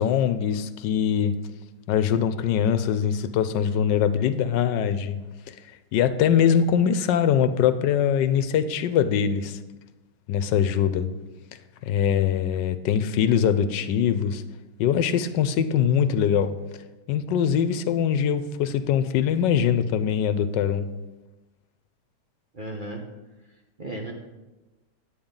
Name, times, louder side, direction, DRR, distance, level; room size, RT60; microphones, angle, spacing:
voice 1, 0.0-1.4 1.9-5.2 5.5-5.6 5.9-9.6 10.3-11.1 11.8-14.4 14.8-16.6 17.1-20.9, left 8 dB, 80° left, 1.2 m, -22 dB
voice 2, 22.5-23.0 23.8-24.1, right 2 dB, 40° right, 0.8 m, -34 dB
9.4 x 8.8 x 3.8 m
omnidirectional pair, 1.9 m